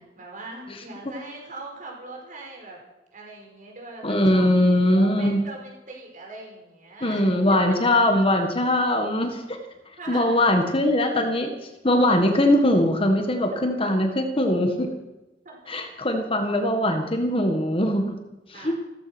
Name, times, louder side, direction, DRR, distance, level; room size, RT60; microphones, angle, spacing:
voice 1, 0.0-2.8 3.1-4.5 4.9-7.3 7.9-8.0 10.0-10.4 15.4-15.6 18.5-18.7, right 2 dB, 45° right, 0 dB, 5.2 m, -40 dB
voice 2, 4.0-5.4 7.0-9.6 10.1-11.5 11.8-14.9 15.7-18.2 18.5-18.7, left 1 dB, 30° left, 5 dB, 1.7 m, -21 dB
16.0 x 14.5 x 6.2 m, 1.0 s
head